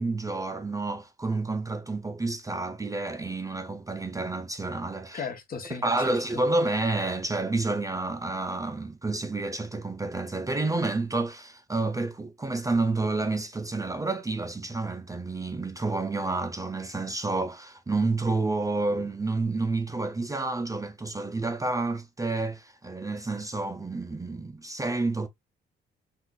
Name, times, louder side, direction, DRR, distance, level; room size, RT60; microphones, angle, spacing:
voice 1, 0.0-5.2 5.8-25.3, right 3 dB, 15° right, 0.4 m, -29 dB
voice 2, 5.1-6.4, left 5 dB, 45° left, 0.9 m, -36 dB
3.7 x 2.4 x 2.3 m
cardioid pair, 90°, 20 cm